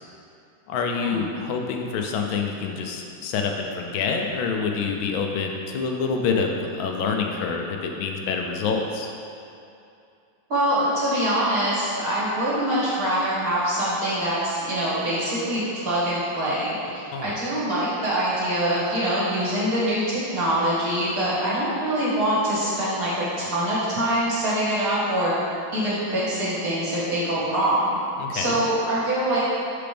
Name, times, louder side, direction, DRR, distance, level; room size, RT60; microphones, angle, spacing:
voice 1, 0.7-9.1 17.1-17.4 28.2-28.6, left 5 dB, 85° left, 2 dB, 1.4 m, -27 dB
voice 2, 10.5-25.3 25.7-28.0 28.3-29.5, right 1 dB, 50° right, -10 dB, 2.1 m, -24 dB
6.8 x 5.0 x 3.4 m, 2.6 s
omnidirectional pair, 2.2 m